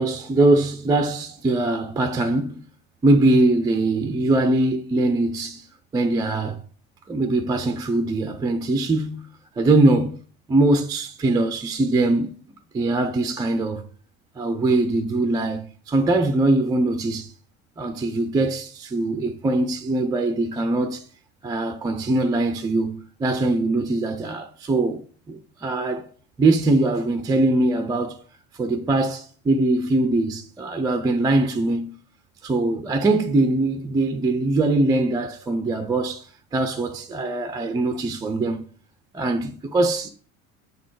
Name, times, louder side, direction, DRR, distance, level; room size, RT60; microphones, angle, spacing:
voice 1, 0.0-2.6 3.0-5.7 5.9-6.6 7.1-9.3 9.6-10.2 10.5-12.4 12.7-13.9 14.4-17.3 17.8-21.1 21.4-25.0 25.3-26.1 26.4-28.2 28.6-32.0 32.4-36.3 36.5-38.7 39.1-40.1, right 2 dB, 10° right, 0.3 m, -22 dB
7.1 x 4.0 x 4.5 m
figure-of-eight pair, 70°, 41 cm